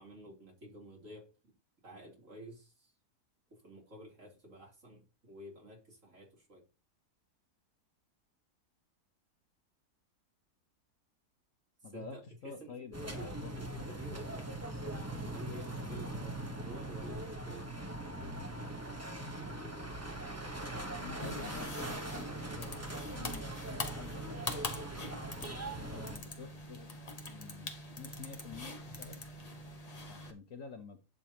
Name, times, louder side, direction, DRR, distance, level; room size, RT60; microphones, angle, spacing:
voice 1, 0.0-1.5 1.8-2.9 3.5-6.6 11.8-14.6 15.1-16.1 16.6-17.7 19.3-20.0, equal, 50° right, -2 dB, 3.6 m, -50 dB
voice 2, 11.8-12.2 12.4-13.5 16.0-16.3 20.9-22.7 23.1-24.6 25.7-26.9 27.3-29.2 30.1-31.0, left 5 dB, 55° left, 6 dB, 1.4 m, -49 dB
sound 1, 12.9-26.2, right 1 dB, 10° right, 1.0 m, -41 dB
sound 2, 21.2-30.3, left 2 dB, 25° left, 1.1 m, -44 dB
11.0 x 6.9 x 2.9 m, 0.30 s
omnidirectional pair, 1.7 m